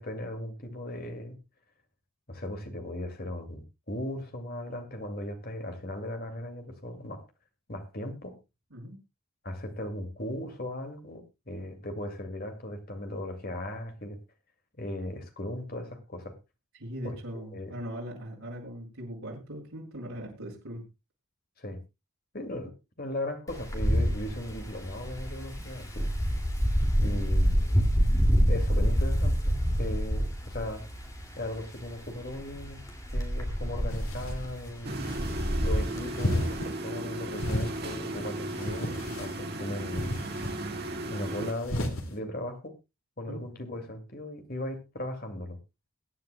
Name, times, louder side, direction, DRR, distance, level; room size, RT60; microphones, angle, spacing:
voice 1, 0.0-1.4 2.3-7.2 7.7-8.4 9.4-14.2 14.8-16.4 17.0-17.2 17.5-17.7 21.6-21.8 22.3-26.1 27.0-28.0 28.5-30.8 31.4-32.8 33.1-34.9 35.6-40.2 41.1-42.7 43.2-45.6, left 1 dB, 45° left, 6 dB, 2.2 m, -37 dB
voice 2, 8.7-9.0 16.7-20.8 27.0-27.3 43.3-43.4, equal, 80° right, -2 dB, 4.1 m, -40 dB
Wind, 23.5-36.6, equal, 15° left, 2.3 m, -27 dB
sound 1, 33.9-34.4 34.9-35.5 36.1-36.7 37.3-38.0 38.5-39.4 39.9-40.5 41.5-42.1, left 1 dB, 75° left, 2.2 m, -33 dB
sound 2, 34.8-41.5, right 1 dB, 45° right, 1.9 m, -36 dB
22.0 x 9.5 x 2.2 m, 0.24 s
head